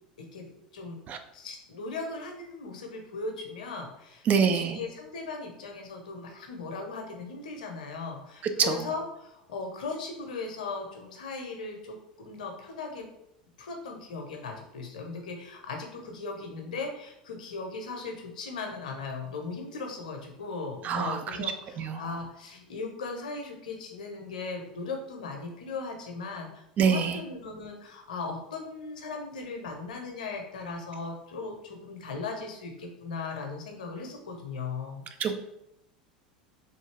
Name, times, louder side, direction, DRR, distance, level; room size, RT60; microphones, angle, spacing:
voice 1, 0.2-0.5 0.7-1.0 1.3-4.2 4.5-13.0 13.6-35.0, left 4 dB, 70° left, 3 dB, 0.7 m, -38 dB
voice 2, 4.3-4.8 8.6-8.9 20.8-22.1 26.8-27.2 35.2-35.3, right 6 dB, 35° right, 7 dB, 0.4 m, -26 dB
3.2 x 2.6 x 3.3 m, 0.81 s
figure-of-eight pair, 80°, 4 cm